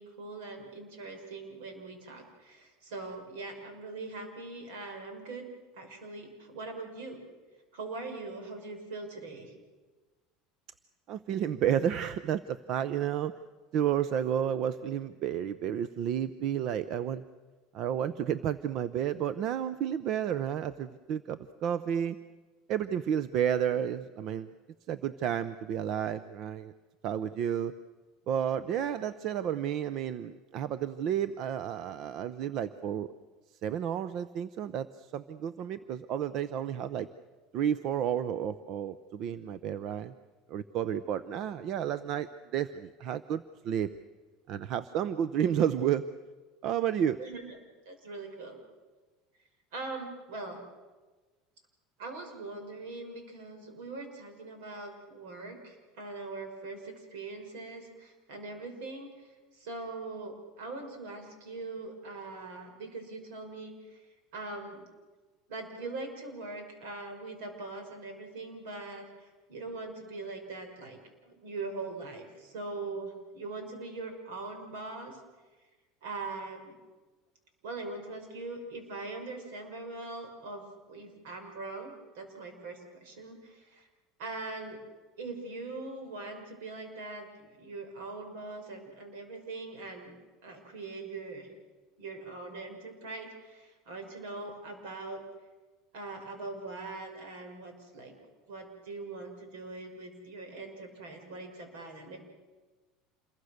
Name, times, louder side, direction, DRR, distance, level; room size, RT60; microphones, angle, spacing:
voice 1, 0.0-5.4 5.7-7.2 7.7-9.5 47.2-47.6 47.9-48.6 49.7-50.6 52.0-59.3 59.5-64.0 64.3-64.8 65.5-75.2 76.0-76.7 77.6-83.9 84.2-84.8 85.2-91.5 92.0-95.2 95.9-98.1 98.5-102.2, right 3 dB, 85° right, 5 dB, 6.0 m, -42 dB
voice 2, 11.1-13.3 13.7-17.2 17.7-22.2 22.7-24.5 24.9-26.7 27.0-27.7 28.3-33.1 33.6-37.1 37.5-40.1 40.5-42.3 42.5-43.9 44.5-46.0 46.6-47.2, right 9 dB, 55° right, 14 dB, 0.7 m, -31 dB
27.5 x 22.0 x 6.6 m, 1.3 s
supercardioid pair, 125°, 0 cm